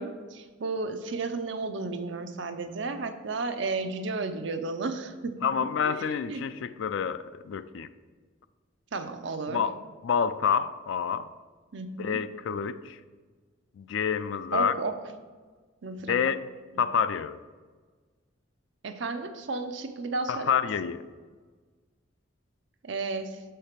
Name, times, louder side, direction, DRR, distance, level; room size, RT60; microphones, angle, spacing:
voice 1, 0.0-5.4 5.8-6.4 8.9-9.6 11.7-12.2 14.5-14.9 15.8-16.3 18.8-20.5 22.8-23.4, right 3 dB, 60° right, 8 dB, 0.6 m, -33 dB
voice 2, 5.4-7.9 9.5-9.8 10.0-11.3 12.0-13.0 13.8-14.8 16.1-16.4 16.8-17.4 20.3-21.0, left 7 dB, 70° left, 13 dB, 0.3 m, -28 dB
6.4 x 4.5 x 5.1 m, 1.4 s
head